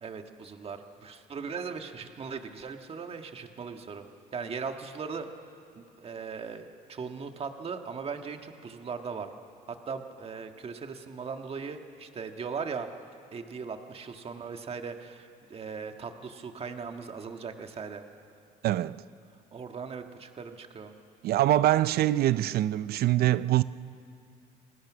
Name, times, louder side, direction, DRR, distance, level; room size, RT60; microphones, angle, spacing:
voice 1, 0.0-4.1 4.3-5.3 5.8-9.3 9.7-12.9 13.3-18.0 19.5-20.9, right 5 dB, 35° right, 1.6 m, -38 dB
voice 2, 18.6-19.0 21.2-23.6, right 14 dB, 65° right, 0.6 m, -24 dB
28.0 x 20.0 x 6.2 m
cardioid pair, 110°, 17 cm